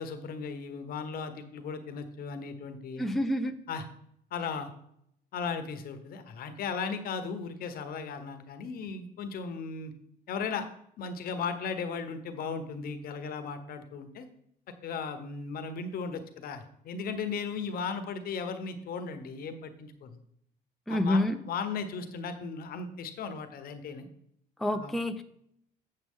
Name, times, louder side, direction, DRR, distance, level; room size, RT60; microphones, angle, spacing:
voice 1, 0.0-3.1 3.7-3.8 4.3-4.7 5.3-9.9 10.3-10.7 11.0-14.3 14.8-20.2 20.9-24.1 24.7-25.0, left 5 dB, 60° left, 9 dB, 1.1 m, -36 dB
voice 2, 3.0-3.6 20.9-21.4 24.6-25.2, left 1 dB, ahead, 6 dB, 0.5 m, -28 dB
7.6 x 7.4 x 3.7 m, 0.72 s
cardioid pair, 110°, 17 cm